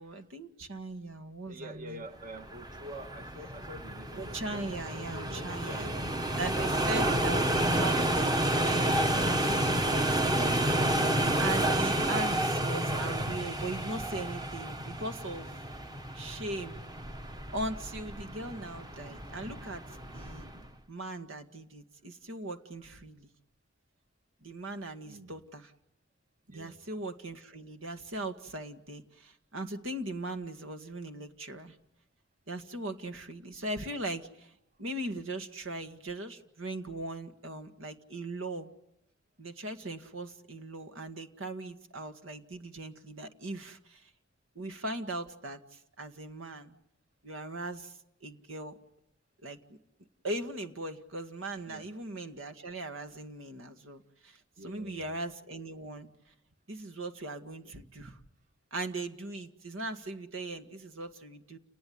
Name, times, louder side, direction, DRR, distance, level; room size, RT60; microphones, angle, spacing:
voice 1, 0.0-2.1 4.2-5.9 6.4-15.6 16.1-16.8 17.5-20.5 20.9-23.3 24.4-25.7 26.5-31.8 32.5-34.5 34.8-38.7 39.4-44.1 44.6-46.7 47.2-48.8 49.4-49.8 50.2-56.1 56.7-58.2 58.7-61.6, right 2 dB, 90° right, 2.0 m, -39 dB
voice 2, 1.5-6.5 7.5-7.8 8.7-9.6 25.1-25.3 26.5-26.7 51.7-51.8 54.6-55.0, right 1 dB, 40° right, 1.6 m, -46 dB
sound 1, 2.4-20.7, right 1 dB, 20° right, 1.2 m, -30 dB
29.5 x 20.0 x 9.6 m
head